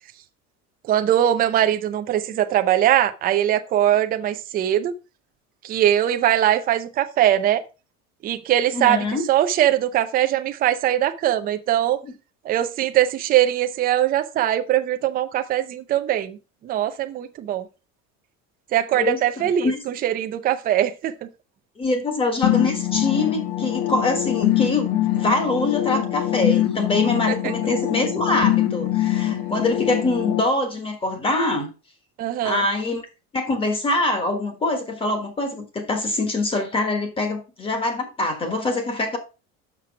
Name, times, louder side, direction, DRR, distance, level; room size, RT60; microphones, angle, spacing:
voice 1, 0.9-4.9 5.6-7.6 8.2-12.0 12.4-16.4 16.6-17.7 18.7-21.3 27.4-27.5 32.2-32.6, right 12 dB, 25° right, 0.5 m, -21 dB
voice 2, 8.7-9.2 12.0-12.1 18.9-19.8 21.8-31.7 32.4-33.0 33.3-39.2, left 2 dB, 15° left, 1.4 m, -24 dB
sound 1, 22.4-30.4, left 13 dB, 80° left, 1.4 m, -23 dB
6.1 x 6.1 x 4.7 m
cardioid pair, 170°, 33 cm